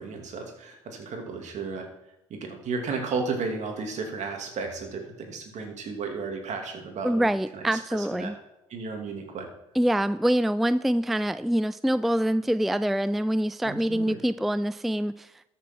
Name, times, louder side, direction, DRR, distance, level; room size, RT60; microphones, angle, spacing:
voice 1, 0.0-1.9 2.3-8.3 8.7-9.5 13.6-14.2, right 4 dB, 55° right, 3 dB, 2.7 m, -34 dB
voice 2, 7.0-8.4 9.8-15.5, right 1 dB, ahead, 15 dB, 0.3 m, -25 dB
13.5 x 6.9 x 4.6 m, 0.92 s
hypercardioid pair, 55°, 14 cm